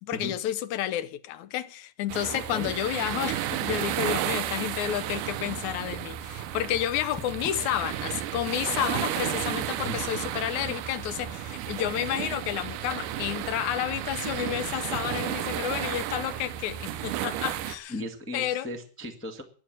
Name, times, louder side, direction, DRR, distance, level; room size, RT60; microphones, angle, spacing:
voice 1, 0.0-17.9 18.3-18.7, left 12 dB, 75° left, 2.2 m, -31 dB
sound 1, 2.1-17.8, right 12 dB, 85° right, 2.4 m, -33 dB
voice 2, 2.3-2.7 9.8-10.0 17.9-19.4, left 1 dB, 10° left, 0.7 m, -36 dB
11.5 x 9.7 x 8.9 m
omnidirectional pair, 3.6 m